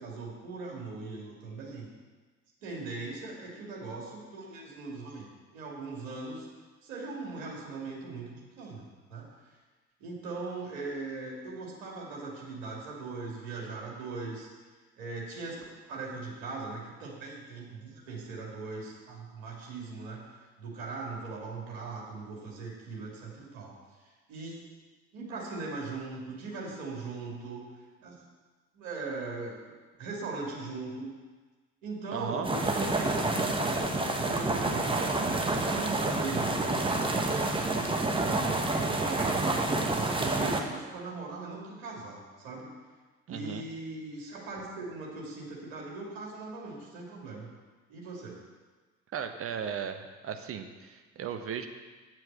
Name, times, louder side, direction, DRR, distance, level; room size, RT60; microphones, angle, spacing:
voice 1, 0.0-1.9 2.6-6.5 6.8-9.3 10.0-14.5 15.0-20.2 20.6-23.7 24.3-24.7 25.1-27.7 28.0-28.2 28.7-29.6 30.0-31.1 31.8-35.2 35.5-37.8 38.2-38.6 38.9-39.5 40.1-42.7 43.3-47.5 47.9-48.4, right 3 dB, 65° right, -3 dB, 2.7 m, -39 dB
voice 2, 32.1-32.5 43.3-43.6 49.1-51.7, right 8 dB, 35° right, 7 dB, 1.0 m, -36 dB
sound 1, 32.4-40.6, right 2 dB, 15° right, 1.2 m, -28 dB
8.8 x 7.6 x 6.3 m, 1.3 s
figure-of-eight pair, 55°, 40 cm